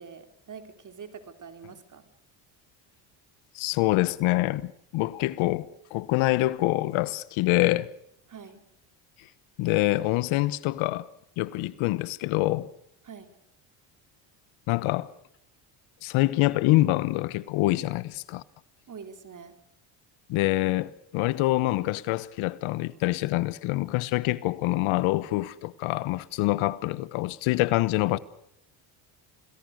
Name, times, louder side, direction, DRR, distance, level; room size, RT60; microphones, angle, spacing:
voice 1, 0.0-2.1 8.3-8.6 13.0-13.3 18.9-19.5, right 6 dB, 40° right, 3.7 m, -44 dB
voice 2, 3.5-7.9 9.6-11.1 11.4-12.7 14.7-15.1 16.0-18.4 20.3-28.2, left 18 dB, 80° left, 1.3 m, -25 dB
28.0 x 20.5 x 6.5 m
supercardioid pair, 90°, 48 cm